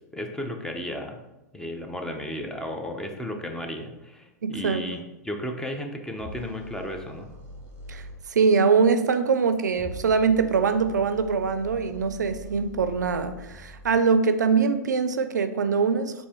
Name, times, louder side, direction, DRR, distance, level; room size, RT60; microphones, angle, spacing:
voice 1, 0.1-1.2 1.5-7.3, left 1 dB, 5° left, 3 dB, 0.5 m, -34 dB
voice 2, 4.4-4.8 7.9-8.0 8.3-16.3, right 5 dB, 85° right, 10 dB, 0.4 m, -23 dB
sound 1, 6.2-8.2 9.7-14.0, equal, 15° right, 1.5 m, -43 dB
4.2 x 2.6 x 3.5 m, 0.97 s
hypercardioid pair, 110°, 9 cm